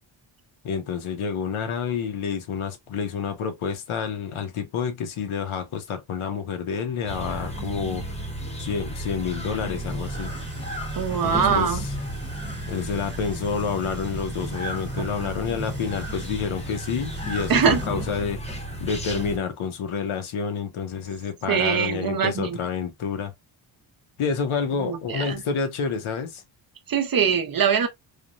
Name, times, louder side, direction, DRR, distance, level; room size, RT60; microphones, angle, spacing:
voice 1, 0.6-8.0 8.6-10.3 11.2-11.9 12.7-18.4 18.8-23.3 24.2-26.4, left 6 dB, 85° left, 0.8 m, -29 dB
sound 1, 7.1-19.4, right 1 dB, 15° left, 0.7 m, -33 dB
sound 2, 9.7-17.9, right 1 dB, 20° right, 1.0 m, -43 dB
voice 2, 11.0-11.9 15.0-15.1 17.5-17.8 21.5-22.6 24.8-25.4 26.9-27.9, right 7 dB, 45° right, 0.6 m, -22 dB
3.3 x 2.1 x 2.5 m
wide cardioid pair, 145°, 48 cm